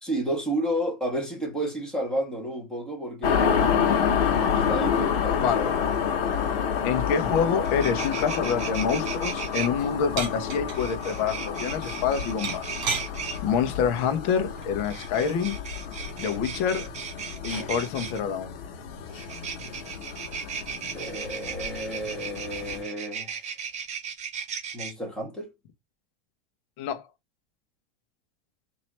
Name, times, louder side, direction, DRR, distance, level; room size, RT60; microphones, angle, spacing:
voice 1, 0.0-3.6 4.5-5.7 20.9-23.4 24.7-25.5, right 1 dB, 5° left, 1.7 m, -31 dB
sound 1, 3.2-22.8, left 7 dB, 85° left, 1.4 m, -29 dB
voice 2, 6.8-12.8 13.4-15.5 16.2-16.9 17.4-18.5 26.8-27.0, left 7 dB, 55° left, 1.1 m, -27 dB
sound 2, 7.3-7.4 7.6-9.7 10.7-13.4 14.8-18.2 19.1-24.9, right 7 dB, 25° right, 0.9 m, -36 dB
sound 3, 10.2-10.8 12.4-13.1 14.6-14.9, right 5 dB, 40° right, 1.9 m, -30 dB
4.3 x 3.0 x 3.1 m
supercardioid pair, 140°, 29 cm